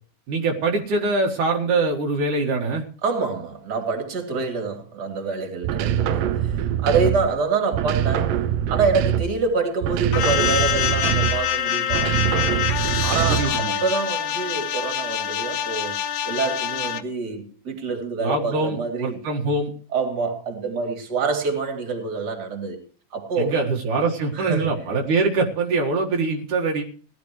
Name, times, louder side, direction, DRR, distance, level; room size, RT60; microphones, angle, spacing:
voice 1, 0.3-2.8 13.3-13.8 18.2-19.7 23.4-26.8, right 3 dB, 70° right, 0 dB, 3.1 m, -23 dB
voice 2, 3.0-12.5 13.0-16.0 16.2-19.2 19.9-22.8 23.1-23.5 24.3-24.7, right 4 dB, 30° right, 5 dB, 3.1 m, -26 dB
sound 1, 5.6-7.4 7.7-9.5 9.8-11.5 11.9-13.6, right 10 dB, 85° right, 2.5 m, -24 dB
sound 2, 10.1-17.0, left 9 dB, 65° left, 2.2 m, -25 dB
18.5 x 12.5 x 3.1 m, 0.43 s
omnidirectional pair, 3.8 m